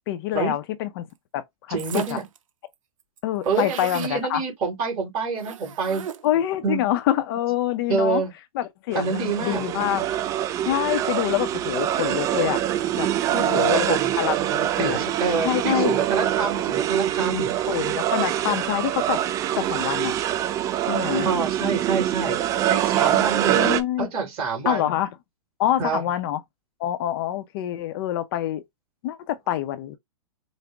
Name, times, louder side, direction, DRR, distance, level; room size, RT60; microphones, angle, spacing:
voice 1, 0.1-1.1 1.3-2.2 3.2-4.4 6.2-8.2 8.5-10.1 10.6-12.6 13.0-13.1 13.4-15.0 15.4-16.0 17.7-19.2 19.5-20.1 20.9-21.3 23.5-24.1 24.6-25.1 25.6-26.4 26.8-28.6 29.0-30.0, left 12 dB, 40° left, 0.5 m, -26 dB
voice 2, 1.7-2.2 3.4-6.1 6.6-6.8 7.9-8.3 8.9-9.6 13.3-14.2 14.8-17.5 21.2-22.4 22.7-23.6 24.0-24.9 25.8-26.1, right 4 dB, 35° right, 2.1 m, -27 dB
sound 1, 1.8-2.4 2.7-2.8 3.0-4.2 5.4-6.4, right 9 dB, 65° right, 0.6 m, -38 dB
sound 2, 8.9-23.8, right 12 dB, 20° right, 0.3 m, -24 dB
5.1 x 2.0 x 3.3 m
hypercardioid pair, 130°, 18 cm